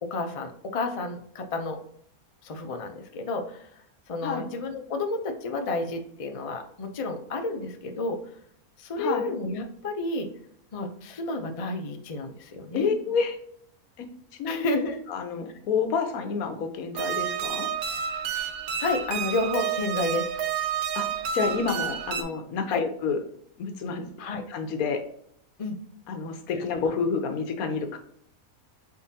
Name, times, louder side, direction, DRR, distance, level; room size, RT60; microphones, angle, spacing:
voice 1, 0.0-1.8 2.4-8.2 8.8-10.3 10.7-12.9 14.5-15.0 18.3-18.4 18.8-20.3 22.7-22.8 24.2-24.4 25.6-25.8 26.5-26.9, left 2 dB, 55° left, 4 dB, 0.3 m, -31 dB
voice 2, 12.7-13.4 14.0-14.1 14.4-14.6 15.1-17.7 20.9-21.1 21.3-23.2 23.6-24.1 24.5-25.0 26.1-28.0, left 5 dB, 80° left, 7 dB, 1.2 m, -28 dB
sound 1, 16.9-22.2, right 8 dB, 85° right, 1.1 m, -30 dB
4.3 x 3.7 x 2.7 m, 0.68 s
omnidirectional pair, 1.5 m